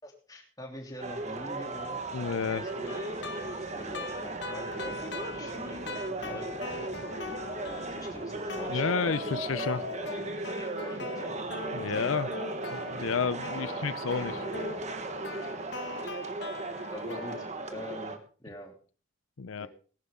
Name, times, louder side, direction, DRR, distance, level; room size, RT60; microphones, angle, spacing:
voice 1, 0.0-2.0 2.6-3.1 3.6-6.9 7.6-9.7 9.9-11.2 11.9-12.1 13.6-13.9 16.0-16.1 16.9-18.8 19.6-19.7, left 1 dB, 20° left, 1 dB, 3.1 m, -45 dB
sound 1, 1.0-18.2, right 2 dB, 35° right, 1.5 m, -37 dB
voice 2, 2.1-2.7 8.7-9.8 11.7-12.3 12.7-14.5 19.4-19.7, left 5 dB, 90° left, 15 dB, 0.6 m, -31 dB
sound 2, 2.5-16.1, right 3 dB, 70° right, 2.3 m, -47 dB
sound 3, 2.7-8.2 8.5-17.5, left 3 dB, 55° left, 1.8 m, -41 dB
19.0 x 11.5 x 3.8 m, 0.38 s
head